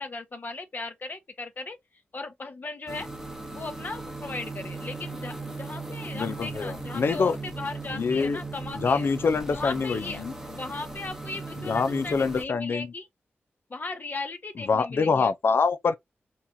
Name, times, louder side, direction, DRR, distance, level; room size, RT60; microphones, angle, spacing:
voice 1, 0.0-1.8 2.1-3.1 3.5-9.1 9.5-13.1 13.7-15.6, left 3 dB, 45° left, 0.9 m, -37 dB
sound 1, 2.9-12.4, right 3 dB, 10° right, 0.8 m, -38 dB
voice 2, 6.1-7.3 7.9-8.4 8.7-10.3 11.6-12.9 14.7-16.0, left 5 dB, 65° left, 0.4 m, -25 dB
4.1 x 2.3 x 2.6 m
cardioid pair, 65°, 4 cm